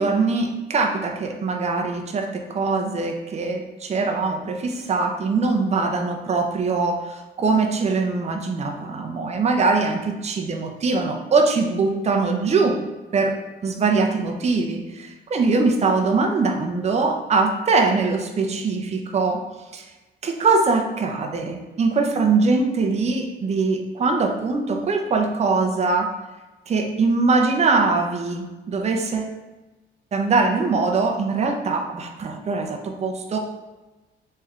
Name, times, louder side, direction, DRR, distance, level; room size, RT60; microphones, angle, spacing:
voice 1, 0.0-12.8 13.1-19.4 19.7-19.8 20.2-26.1 26.7-29.3 30.1-33.4, right 4 dB, 35° right, 3 dB, 0.6 m, -22 dB
3.3 x 3.2 x 3.6 m, 1.1 s
cardioid pair, 90°, 20 cm